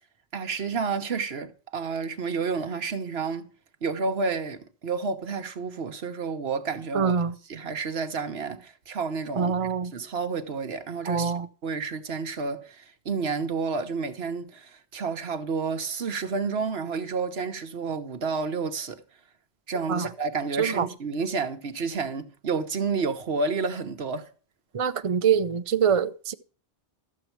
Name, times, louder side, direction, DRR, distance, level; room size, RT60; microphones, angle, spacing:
voice 1, 0.3-3.5 3.8-7.1 7.5-9.5 9.8-11.3 11.6-19.0 19.7-24.3, right 4 dB, 65° right, 1.3 m, -30 dB
voice 2, 6.9-7.3 9.4-9.9 11.1-11.5 19.9-20.1 20.6-20.9 24.7-26.3, right 7 dB, 40° right, 0.5 m, -24 dB
13.0 x 7.6 x 4.5 m
omnidirectional pair, 1.1 m